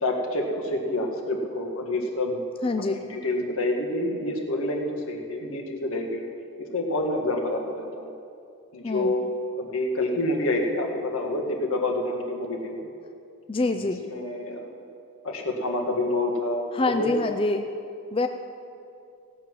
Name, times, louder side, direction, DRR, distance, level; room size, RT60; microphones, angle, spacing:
voice 1, 0.0-2.4 2.8-6.2 6.6-8.1 8.7-9.3 9.6-12.9 13.7-14.7 15.2-17.1, left 1 dB, 80° left, 1 dB, 1.7 m, -28 dB
voice 2, 2.6-3.0 8.8-9.1 13.5-14.0 16.7-17.7 18.1-18.3, left 3 dB, 25° left, 6 dB, 0.4 m, -25 dB
17.0 x 7.8 x 6.1 m, 2.5 s
head